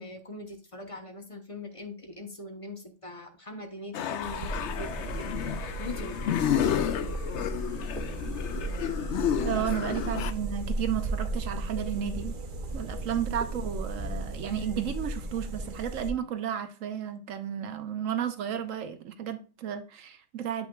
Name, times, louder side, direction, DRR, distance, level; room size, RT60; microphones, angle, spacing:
voice 1, 0.0-6.3 9.5-9.7, left 2 dB, 30° left, 0.8 m, -42 dB
sound 1, 3.9-10.3, left 9 dB, 65° left, 0.8 m, -31 dB
sound 2, 4.2-16.1, right 2 dB, 45° right, 0.8 m, -35 dB
voice 2, 9.4-12.4 12.7-20.7, right 9 dB, 75° right, 1.2 m, -33 dB
8.3 x 5.8 x 2.3 m
omnidirectional pair, 1.4 m